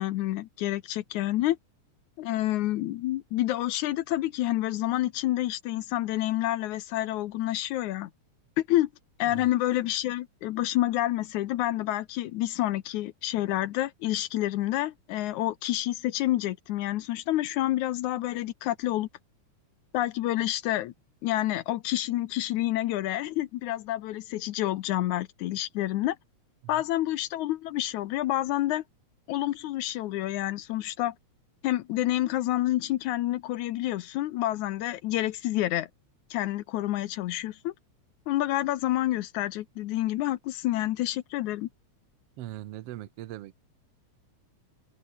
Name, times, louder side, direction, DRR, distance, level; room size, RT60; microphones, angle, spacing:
voice 1, 0.0-1.6 2.2-8.1 8.6-8.9 9.2-19.1 19.9-20.9 21.2-26.2 26.7-28.8 29.3-31.1 31.6-35.9 36.3-37.7 38.3-41.7, left 15 dB, 80° left, 2.2 m, -28 dB
voice 2, 42.4-43.5, right 14 dB, 65° right, 1.6 m, -40 dB
omnidirectional pair, 3.5 m